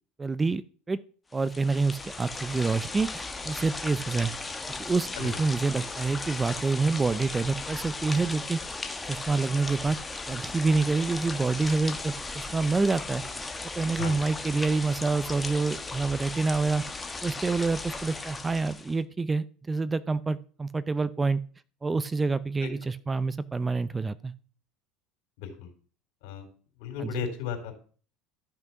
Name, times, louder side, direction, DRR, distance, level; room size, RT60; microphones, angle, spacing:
voice 1, 0.2-0.6 0.9-1.0 1.3-4.3 4.8-8.6 9.1-10.0 10.3-13.2 13.8-16.8 17.2-21.4 21.8-24.3 27.0-27.2, right 3 dB, 20° right, 17 dB, 0.6 m, -27 dB
sound 1, 1.3-19.0, left 3 dB, 15° left, 1.3 m, -37 dB
voice 2, 25.4-25.7 26.2-26.5 26.8-27.8, left 8 dB, 75° left, 5 dB, 3.8 m, -35 dB
13.5 x 6.2 x 5.9 m, 0.42 s
supercardioid pair, 105°, 0 cm